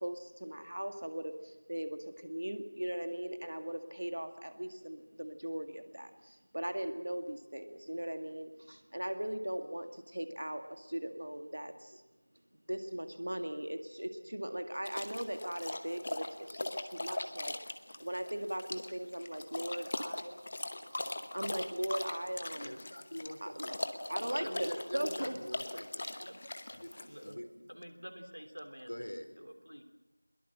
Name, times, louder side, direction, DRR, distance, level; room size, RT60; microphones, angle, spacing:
voice 1, 0.0-12.0 12.7-17.5 18.0-20.4 21.3-22.8 23.4-23.8 24.1-25.4, right 1 dB, 50° right, 7 dB, 2.0 m, -39 dB
sound 1, 14.9-27.3, left 2 dB, 20° left, 1.0 m, -40 dB
voice 2, 22.6-23.6 24.4-26.1 26.8-27.5 28.9-29.3, equal, 70° left, 6 dB, 3.9 m, -44 dB
voice 3, 24.4-25.4 26.2-26.4 27.0-27.4 27.7-29.8, equal, 75° right, 7 dB, 3.2 m, -47 dB
22.0 x 21.5 x 7.6 m, 1.1 s
figure-of-eight pair, 175°, 0 cm